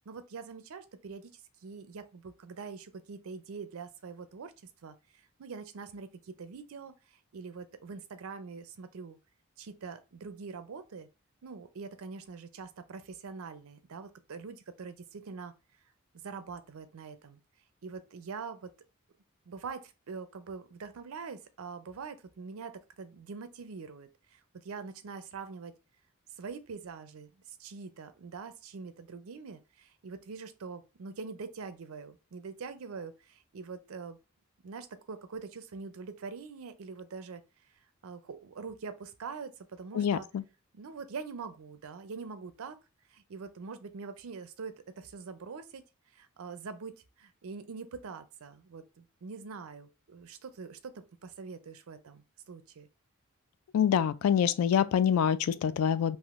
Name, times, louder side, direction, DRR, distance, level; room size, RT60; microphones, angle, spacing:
voice 1, 0.1-4.5 4.8-4.9 5.4-9.2 9.6-11.1 11.4-15.5 16.2-17.4 17.8-18.7 19.5-25.7 26.4-34.2 34.6-37.4 38.0-40.3 40.7-42.8 43.1-45.8 46.1-52.9, right 5 dB, 80° right, 0.5 m, -44 dB
voice 2, 39.9-40.4 53.7-56.2, left 8 dB, 85° left, 0.3 m, -26 dB
3.5 x 2.6 x 2.4 m
head